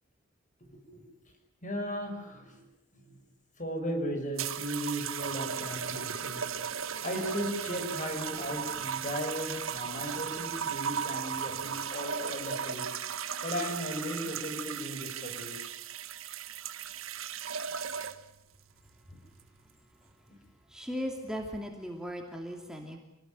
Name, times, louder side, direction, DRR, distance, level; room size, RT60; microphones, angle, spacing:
voice 1, 0.7-1.0 1.6-2.6 2.9-3.2 3.6-15.7 20.3-20.4, equal, 40° left, 5 dB, 6.4 m, -37 dB
sound 1, 4.4-18.4 19.3-19.6, right 8 dB, 90° right, 1.5 m, -36 dB
voice 2, 20.7-23.0, equal, 5° right, 2 dB, 2.7 m, -37 dB
28.0 x 19.0 x 9.3 m, 0.82 s
head